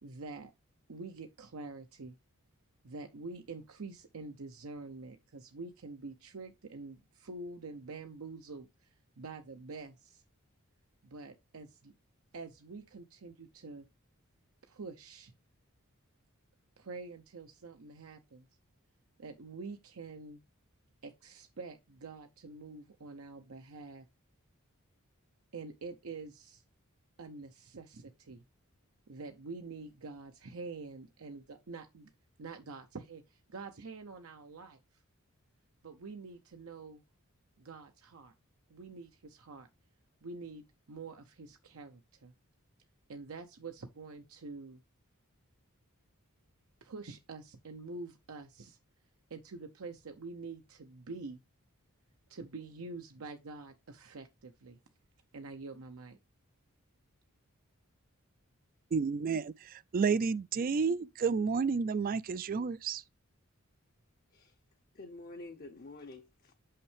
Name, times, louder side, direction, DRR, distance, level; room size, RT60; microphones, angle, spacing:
voice 1, 0.0-0.5 0.9-2.2 2.8-10.2 11.0-11.9 12.3-13.9 14.6-15.3 16.8-18.5 19.2-20.4 21.0-24.1 25.5-26.6 27.2-28.4 29.1-32.1 32.4-34.8 35.8-37.0 37.6-38.3 38.7-39.7 40.2-42.3 43.1-44.8 46.8-48.8 49.3-51.4 52.3-54.8 55.3-56.2, right 3 dB, 75° right, 0.7 m, -46 dB
voice 2, 58.9-63.0, right 5 dB, 40° right, 0.3 m, -31 dB
voice 3, 64.9-66.5, left 2 dB, 45° left, 0.7 m, -48 dB
6.4 x 5.7 x 3.3 m
head